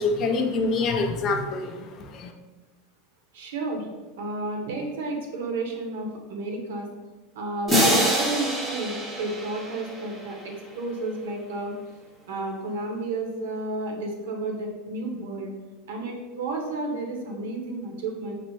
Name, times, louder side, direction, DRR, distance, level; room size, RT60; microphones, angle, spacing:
voice 1, 0.0-2.3, left 3 dB, 35° left, 4 dB, 0.5 m, -26 dB
voice 2, 3.3-3.9 4.2-6.9 7.3-11.7 12.3-15.5 15.9-18.4, right 2 dB, 80° right, 2 dB, 0.8 m, -32 dB
sound 1, 7.7-10.5, equal, 10° right, 0.8 m, -25 dB
4.2 x 2.0 x 4.4 m, 1.2 s
supercardioid pair, 150°, 0 cm